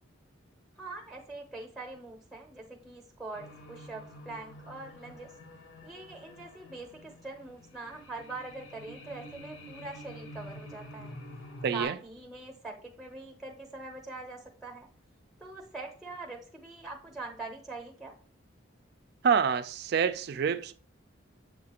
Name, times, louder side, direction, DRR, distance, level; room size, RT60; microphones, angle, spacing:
voice 1, 0.8-5.3 5.8-11.2 11.7-14.9 15.4-18.1, right 3 dB, ahead, 0.6 m, -43 dB
sound 1, 3.3-11.8, left 1 dB, 75° left, 0.8 m, -48 dB
voice 2, 11.6-12.0 19.2-20.7, right 6 dB, 50° right, 0.3 m, -27 dB
7.3 x 2.4 x 2.8 m
head